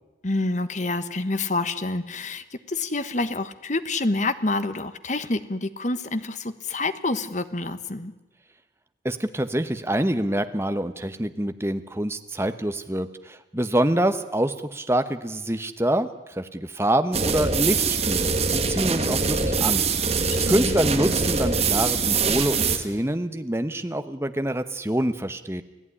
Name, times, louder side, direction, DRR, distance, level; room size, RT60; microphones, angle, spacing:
voice 1, 0.2-8.1 20.2-20.8, left 2 dB, 40° left, 12 dB, 1.2 m, -27 dB
voice 2, 9.0-19.9 20.5-25.6, right 1 dB, 15° right, 9 dB, 1.0 m, -26 dB
sound 1, 17.1-22.8, right 4 dB, 35° right, 1.9 m, -23 dB
28.5 x 16.5 x 9.9 m, 1.1 s
head